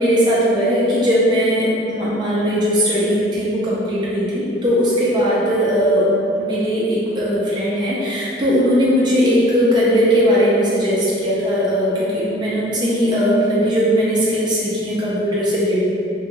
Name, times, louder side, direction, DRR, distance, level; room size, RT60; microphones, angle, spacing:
voice 1, 0.0-15.8, equal, 25° right, -9 dB, 0.5 m, -18 dB
2.9 x 2.6 x 2.3 m, 2.6 s
head